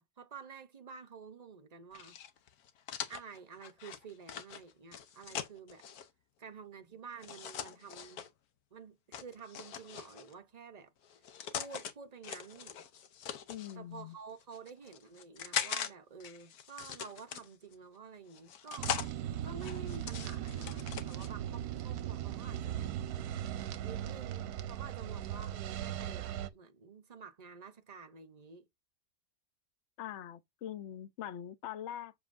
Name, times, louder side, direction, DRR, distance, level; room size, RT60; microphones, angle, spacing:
voice 1, 0.0-2.2 3.1-5.8 6.4-8.2 8.7-10.9 11.5-12.8 13.7-19.0 19.4-22.9 23.8-28.6, right 5 dB, 40° right, 0.5 m, -50 dB
sound 1, 1.9-6.1 7.2-8.3 9.1-10.3 11.1-11.9 12.2-13.8 14.4-15.9 16.2-17.7 18.3-19.1 19.6-21.3, left 9 dB, 70° left, 1.3 m, -41 dB
voice 2, 13.5-14.2 30.0-32.1, left 11 dB, 55° left, 0.8 m, -43 dB
sound 2, 18.8-26.5, right 11 dB, 75° right, 1.1 m, -38 dB
7.3 x 6.9 x 2.6 m
omnidirectional pair, 1.7 m